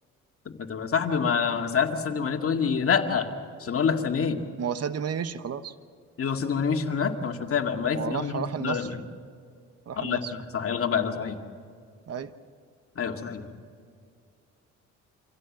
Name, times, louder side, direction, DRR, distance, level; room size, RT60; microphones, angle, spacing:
voice 1, 0.6-3.3 3.6-4.4 6.2-9.0 10.0-11.4 13.0-13.5, left 6 dB, 50° left, 4 dB, 2.2 m, -27 dB
voice 2, 4.6-5.7 7.9-8.9 9.9-10.3 12.1-12.3, right 7 dB, 55° right, 12 dB, 1.1 m, -32 dB
26.0 x 16.5 x 7.5 m, 2.3 s
cardioid pair, 90°, 30 cm